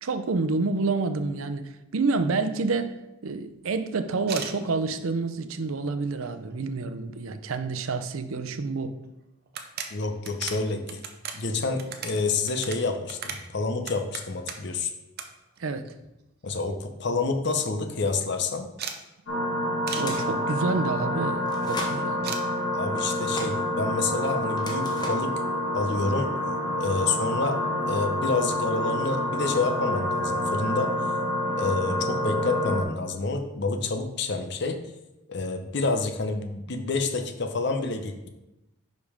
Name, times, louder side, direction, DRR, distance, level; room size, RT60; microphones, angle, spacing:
voice 1, 0.0-2.9 3.2-9.0 15.6-15.9 19.9-22.4, right 3 dB, 90° right, 10 dB, 0.6 m, -28 dB
sound 1, 4.2-4.6 5.3-5.4 5.8-6.5 6.9-7.0 7.2-7.3 8.7-8.8 9.0-9.1 9.5-14.8 15.2-15.3 15.5-16.3 16.7-16.8 17.0-17.1 17.4-17.7 18.8-19.0 19.9-20.1 22.2-22.4, right 7 dB, 50° right, 0.7 m, -37 dB
voice 2, 9.9-11.0 11.3-14.9 16.4-18.7 22.7-25.3 25.7-26.3 26.8-27.6 27.9-30.9 31.6-34.8 35.3-38.3, left 3 dB, 55° left, 5 dB, 0.7 m, -28 dB
sound 2, 19.3-32.8, left 1 dB, 80° left, 1.9 m, -28 dB
sound 3, 19.9-20.4 21.5-22.0 23.0-23.6 24.5-25.3, left 1 dB, 20° left, 0.8 m, -37 dB
5.2 x 5.2 x 4.9 m, 0.95 s
head